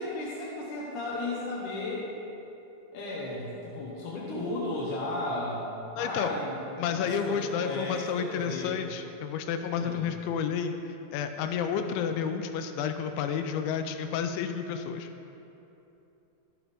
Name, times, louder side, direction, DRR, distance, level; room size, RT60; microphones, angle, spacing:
voice 1, 0.0-2.1 2.9-5.7 6.0-9.0 9.7-10.1, left 2 dB, 70° left, -5 dB, 1.9 m, -34 dB
voice 2, 6.0-6.3 6.8-15.1, left 7 dB, 85° left, 7 dB, 2.9 m, -31 dB
15.0 x 7.0 x 3.5 m, 2.9 s
omnidirectional pair, 5.2 m